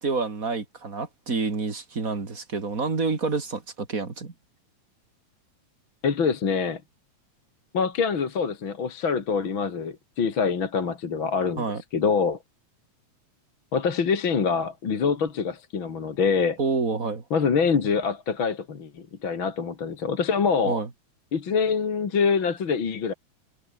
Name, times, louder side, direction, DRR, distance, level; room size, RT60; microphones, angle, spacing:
voice 1, 0.0-4.3 11.6-11.8 16.6-17.2 20.7-20.9, right 4 dB, 30° right, 2.8 m, -28 dB
voice 2, 6.0-6.8 7.7-11.6 11.9-12.4 13.7-16.6 17.3-20.8 21.3-23.1, left 5 dB, 45° left, 2.9 m, -25 dB
omnidirectional pair, 3.4 m